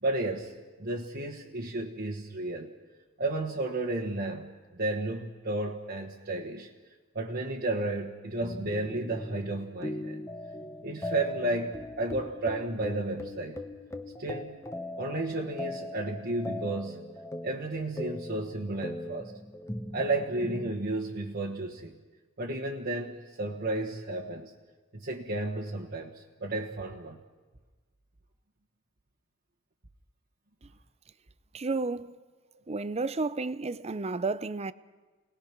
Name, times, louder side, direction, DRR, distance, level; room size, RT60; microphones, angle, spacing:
voice 1, 0.0-0.5 0.8-2.7 3.2-6.7 7.1-10.2 10.8-13.6 14.2-14.6 14.9-17.0 17.4-19.3 19.9-22.0 22.4-24.5 24.9-27.2, right 2 dB, 50° right, 1.5 m, -33 dB
sound 1, 8.4-20.7, left 1 dB, 15° left, 1.1 m, -40 dB
voice 2, 31.5-32.2 32.7-34.7, right 3 dB, 30° right, 0.6 m, -31 dB
29.5 x 19.5 x 6.0 m
head